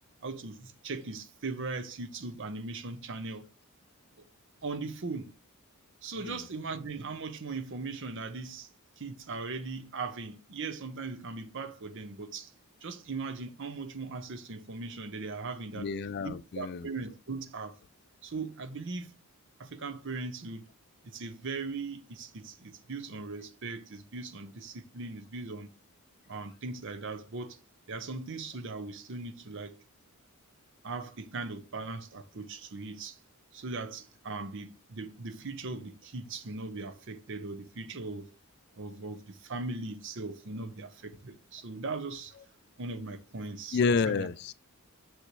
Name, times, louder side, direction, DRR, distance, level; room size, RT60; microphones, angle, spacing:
voice 1, 0.2-3.5 4.6-5.4 6.0-8.7 9.0-12.5 12.8-15.9 16.2-17.8 18.2-19.1 19.6-20.7 21.0-25.7 26.3-27.6 27.9-29.8 30.8-33.2 33.5-38.3 38.7-42.3 42.8-43.8 44.1-44.3, right 3 dB, 55° right, 0.7 m, -39 dB
voice 2, 15.7-16.9 43.7-44.5, left 5 dB, 50° left, 0.4 m, -30 dB
6.4 x 6.4 x 3.1 m
head